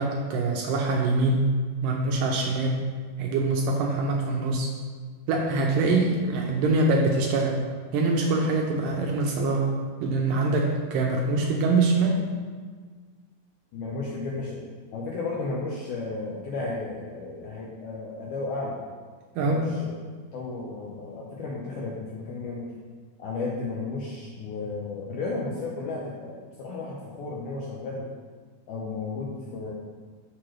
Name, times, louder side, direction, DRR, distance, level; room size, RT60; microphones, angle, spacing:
voice 1, 0.0-1.5 1.8-2.8 3.2-4.7 5.3-7.6 7.9-9.7 10.0-12.3 19.4-19.9, right 2 dB, 80° right, 0 dB, 2.0 m, -24 dB
voice 2, 13.7-14.6 14.9-18.8 19.4-20.0 20.3-22.7 23.2-28.1 28.7-29.7, left 3 dB, 80° left, -4 dB, 1.8 m, -33 dB
6.6 x 6.0 x 3.1 m, 1.5 s
omnidirectional pair, 4.3 m